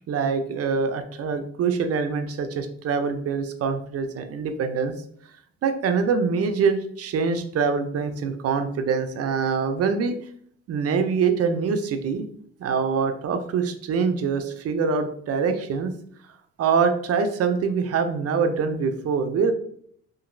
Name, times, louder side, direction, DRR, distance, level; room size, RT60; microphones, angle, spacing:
voice 1, 0.1-4.9 5.6-10.2 10.7-12.3 12.6-15.9 16.6-19.5, right 5 dB, 55° right, 8 dB, 0.5 m, -24 dB
2.9 x 2.6 x 2.5 m, 0.64 s
cardioid pair, 90°, 30 cm